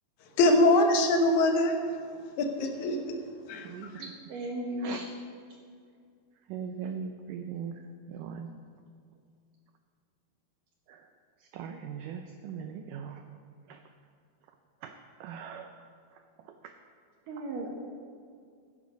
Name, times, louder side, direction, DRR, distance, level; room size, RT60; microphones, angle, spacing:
voice 1, 0.4-1.7 2.4-3.2 3.5-3.7, left 2 dB, 65° left, 4 dB, 2.0 m, -23 dB
voice 2, 4.0-5.0 17.3-17.7, right 1 dB, 65° right, 0 dB, 2.8 m, -35 dB
voice 3, 6.5-7.7 8.1-8.5 11.5-13.2 13.7-13.8 14.8-14.9 15.2-15.7, right 7 dB, 85° right, 6 dB, 1.9 m, -39 dB
14.5 x 10.5 x 5.1 m, 2.3 s
omnidirectional pair, 4.5 m